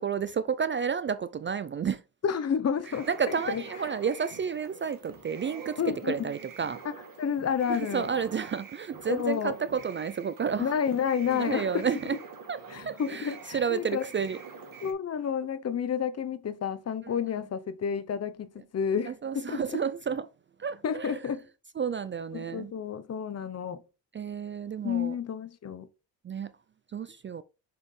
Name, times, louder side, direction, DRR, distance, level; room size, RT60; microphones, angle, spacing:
voice 1, 0.0-2.0 3.1-6.8 7.7-10.7 11.3-12.2 12.5-12.6 12.9-14.4 19.1-20.3 20.6-21.2 21.8-22.7 24.1-25.2 26.2-26.5 26.9-27.4, right 6 dB, 30° right, 0.4 m, -31 dB
voice 2, 2.2-3.6 5.8-6.2 6.8-6.9 7.2-8.1 9.1-9.6 10.6-11.9 12.7-14.0 14.8-19.8 20.8-21.5 22.3-23.8 24.8-25.9, left 7 dB, 35° left, 0.7 m, -30 dB
sound 1, 2.8-14.9, right 5 dB, 50° right, 1.9 m, -46 dB
6.2 x 5.5 x 3.2 m
cardioid pair, 90°, 43 cm